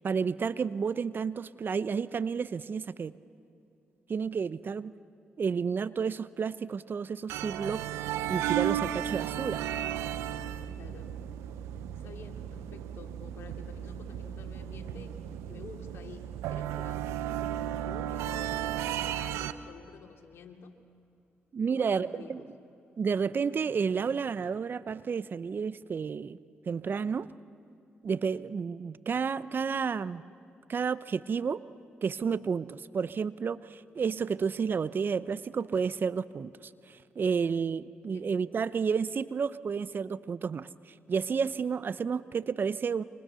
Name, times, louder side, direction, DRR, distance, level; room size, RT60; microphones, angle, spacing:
voice 1, 0.0-3.1 4.1-4.9 5.4-7.8 8.3-9.6 21.5-22.4 23.0-26.4 26.7-27.3 28.0-30.2 30.7-31.6 32.0-43.0, right 6 dB, 50° right, 16 dB, 0.8 m, -31 dB
sound 1, 7.3-19.5, right 11 dB, 85° right, 0.8 m, -34 dB
voice 2, 10.7-11.1 11.9-15.1 15.5-20.7 21.7-22.4 38.0-38.3, left 5 dB, 70° left, 4 dB, 2.7 m, -50 dB
29.0 x 25.0 x 7.0 m, 2.7 s
supercardioid pair, 50°, 4 cm